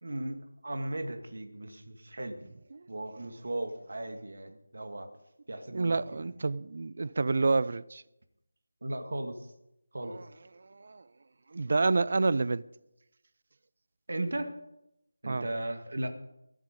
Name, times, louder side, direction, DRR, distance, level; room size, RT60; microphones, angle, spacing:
voice 1, 0.0-2.4 2.9-5.1 5.5-6.2 8.8-9.5 9.9-10.2 14.1-14.5 15.2-16.1, right 1 dB, 65° right, 1.9 m, -36 dB
voice 2, 5.7-8.0 10.0-10.3 10.6-11.1 11.5-12.7 15.2-15.4, right 3 dB, 40° right, 0.4 m, -29 dB
22.5 x 8.2 x 5.2 m
figure-of-eight pair, 175°, 0 cm